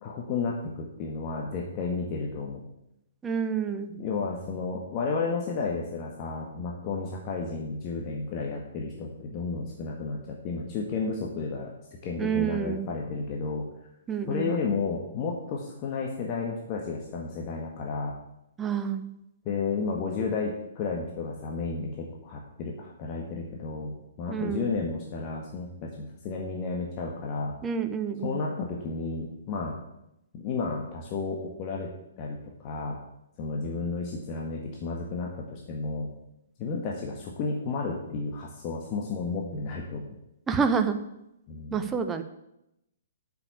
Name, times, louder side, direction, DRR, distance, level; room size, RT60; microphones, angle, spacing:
voice 1, 0.0-2.6 3.9-11.7 12.0-13.7 14.3-18.1 19.4-27.5 28.2-29.8 30.3-31.9 32.2-33.0 33.4-36.1 36.6-40.0 41.5-41.9, left 4 dB, 35° left, -1 dB, 1.7 m, -32 dB
voice 2, 3.2-3.9 12.2-12.9 14.1-14.5 18.6-19.1 24.3-24.7 27.6-28.4 40.5-41.0 41.7-42.2, right 6 dB, 15° right, 8 dB, 1.0 m, -28 dB
8.2 x 7.0 x 8.2 m, 0.85 s
figure-of-eight pair, 120°, 0 cm